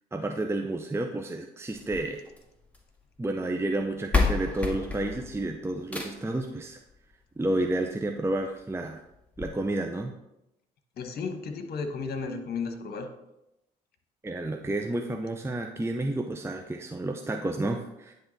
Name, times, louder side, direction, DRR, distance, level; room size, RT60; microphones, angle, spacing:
voice 1, 0.1-2.2 3.2-6.8 7.4-9.0 9.4-10.1 14.2-18.1, right 2 dB, 15° right, 4 dB, 0.7 m, -30 dB
sound 1, 1.7-2.9 3.8-3.9 4.1-6.4 7.7-7.8 8.3-8.4 8.7-8.8 9.4-9.5, left 4 dB, 5° left, 1.7 m, -30 dB
voice 2, 11.0-13.1, left 4 dB, 55° left, 6 dB, 1.1 m, -34 dB
10.0 x 3.4 x 4.1 m, 0.87 s
hypercardioid pair, 50°, 19 cm